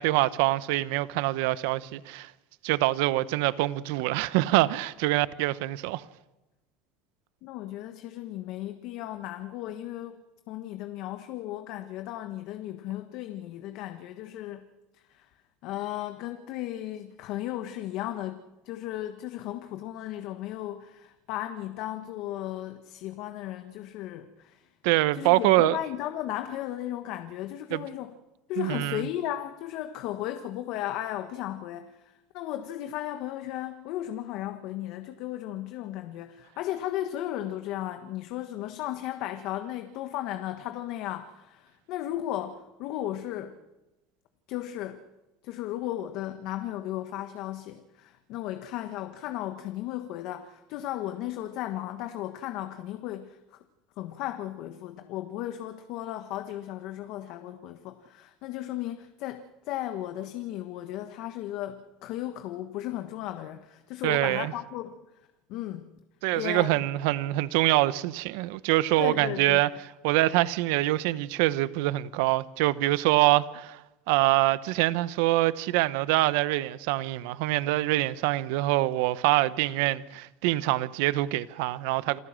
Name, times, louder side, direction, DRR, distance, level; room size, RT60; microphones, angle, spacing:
voice 1, 0.0-2.3 2.6-6.0 24.8-25.8 27.7-27.8 28.6-29.0 64.0-64.5 66.2-69.7 70.0-73.8 74.1-82.2, right 17 dB, 80° right, 0.8 m, -25 dB
voice 2, 7.4-14.7 14.9-15.3 15.6-24.7 25.1-28.1 28.5-43.6 44.5-45.0 45.4-53.6 54.0-65.0 65.5-65.9 66.3-66.8 69.0-69.7, left 13 dB, 65° left, 1.4 m, -35 dB
27.5 x 15.0 x 7.6 m
supercardioid pair, 115°, 0 cm